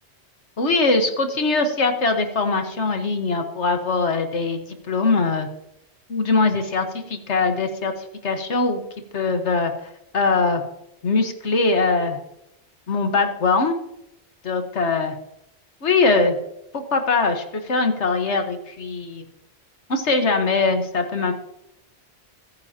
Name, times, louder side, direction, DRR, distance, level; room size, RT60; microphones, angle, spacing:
voice 1, 0.6-4.6 4.9-5.5 6.1-7.9 8.2-8.8 9.1-9.7 10.1-10.6 11.0-12.2 12.9-13.7 14.4-15.1 15.8-16.4 16.7-19.2 19.9-21.3, left 3 dB, 80° left, 6 dB, 1.7 m, -21 dB
23.0 x 9.7 x 2.9 m, 0.82 s
omnidirectional pair, 1.1 m